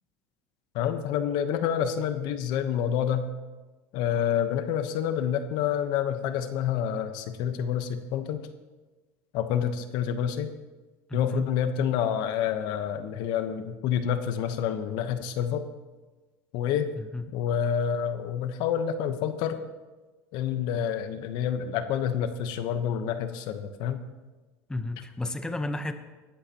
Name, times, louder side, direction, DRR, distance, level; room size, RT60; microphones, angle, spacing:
voice 1, 0.7-3.3 3.9-8.4 9.3-10.5 11.1-15.6 16.5-16.9 17.3-19.6 20.3-24.0, left 8 dB, 65° left, 9 dB, 1.1 m, -28 dB
voice 2, 11.1-11.4 17.0-17.2 24.7-25.9, left 2 dB, 10° left, 8 dB, 1.0 m, -32 dB
19.0 x 13.5 x 3.0 m, 1.2 s
supercardioid pair, 110°, 8 cm